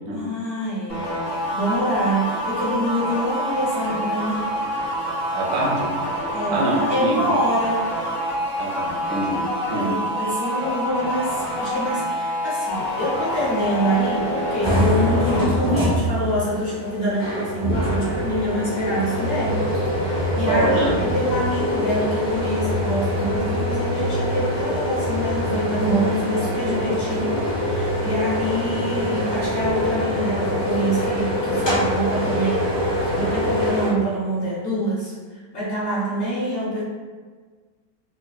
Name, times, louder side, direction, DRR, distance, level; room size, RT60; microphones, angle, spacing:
voice 1, 0.1-1.1 1.5-4.4 6.3-7.9 9.7-32.7 33.1-35.1 35.5-36.8, equal, 50° left, -7 dB, 1.0 m, -26 dB
sound 1, 0.9-15.5, equal, 75° left, 1.7 m, -27 dB
voice 2, 5.3-6.2 6.5-7.4 8.6-9.9 20.5-21.0, right 1 dB, 75° right, -3 dB, 1.2 m, -24 dB
sound 2, 14.6-33.9, equal, 30° left, 0.5 m, -24 dB
4.6 x 2.2 x 2.3 m, 1.5 s
omnidirectional pair, 1.6 m